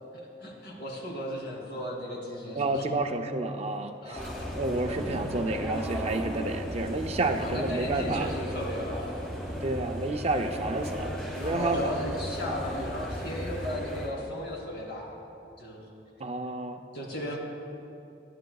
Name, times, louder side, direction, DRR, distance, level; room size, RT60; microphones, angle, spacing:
voice 1, 0.4-2.9 4.0-4.5 7.4-9.4 11.4-15.2 15.6-15.8 16.9-17.4, equal, 60° left, -2 dB, 3.1 m, -35 dB
voice 2, 2.6-4.2 4.5-8.3 9.6-11.9 16.2-16.8, right 2 dB, 35° right, 6 dB, 0.5 m, -30 dB
sound 1, 4.1-14.1, equal, 5° left, 2.7 m, -35 dB
23.0 x 11.0 x 2.3 m, 2.7 s
head